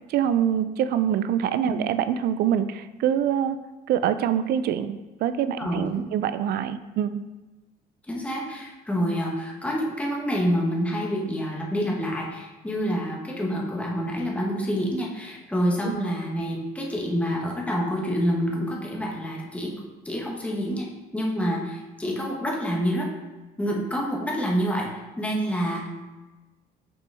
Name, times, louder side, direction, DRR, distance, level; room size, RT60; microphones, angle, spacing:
voice 1, 0.1-3.6 3.9-7.2 15.8-16.0, right 9 dB, 65° right, 12 dB, 0.4 m, -25 dB
voice 2, 8.1-19.7 20.0-20.9 21.1-23.1 23.6-24.9 25.2-25.9, equal, 10° left, -2 dB, 1.3 m, -27 dB
6.0 x 5.1 x 3.4 m, 1.2 s
cardioid pair, 110°, 17 cm